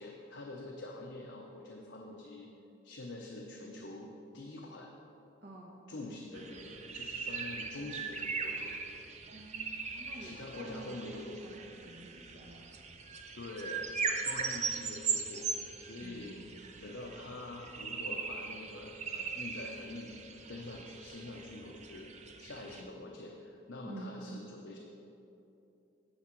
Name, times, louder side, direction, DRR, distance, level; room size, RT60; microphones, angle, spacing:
voice 1, 0.0-2.5 2.8-4.9 5.9-8.7 10.2-11.3 13.3-13.9 14.2-15.5 15.8-16.4 16.8-20.1 20.5-22.1 22.4-24.8, left 2 dB, 65° left, 0 dB, 0.7 m, -45 dB
voice 2, 5.4-5.8 9.3-12.7 16.0-16.3 23.8-24.1, right 1 dB, 55° right, -4 dB, 1.0 m, -49 dB
sound 1, 6.3-22.8, right 5 dB, 35° right, 0.6 m, -40 dB
9.9 x 7.4 x 4.5 m, 2.9 s
head